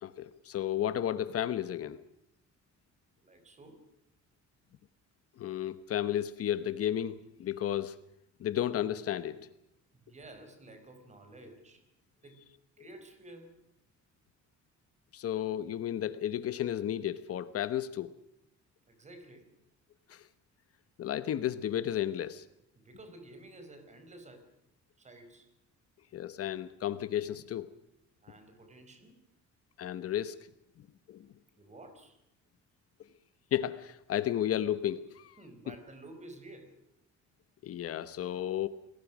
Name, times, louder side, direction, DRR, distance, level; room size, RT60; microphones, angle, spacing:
voice 1, 0.0-2.0 5.4-8.0 8.4-9.5 15.1-18.1 20.1-20.3 21.0-22.4 26.1-27.7 29.8-30.4 30.8-31.3 33.5-35.4 35.7-35.8 37.6-38.7, left 11 dB, 50° left, 13 dB, 1.1 m, -33 dB
voice 2, 3.2-3.8 10.0-11.8 12.2-12.5 12.8-13.6 18.9-19.5 22.7-24.5 25.0-25.5 28.2-29.2 31.5-32.2 35.4-36.7, right 2 dB, 25° right, 8 dB, 4.7 m, -52 dB
30.0 x 20.5 x 6.2 m, 0.78 s
cardioid pair, 170°, 30 cm